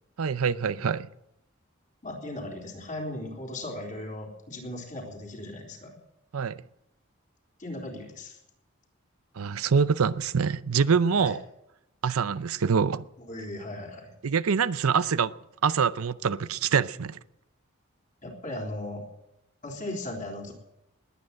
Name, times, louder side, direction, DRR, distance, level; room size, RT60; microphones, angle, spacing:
voice 1, 0.2-1.1 6.3-6.6 9.4-11.4 12.0-13.1 14.2-15.3 15.6-17.2, right 6 dB, 85° right, 0.6 m, -25 dB
voice 2, 2.0-6.0 7.6-8.4 11.2-11.3 13.3-14.1 18.2-19.0 19.6-20.5, left 1 dB, 35° left, 3.9 m, -37 dB
20.0 x 9.2 x 7.6 m
head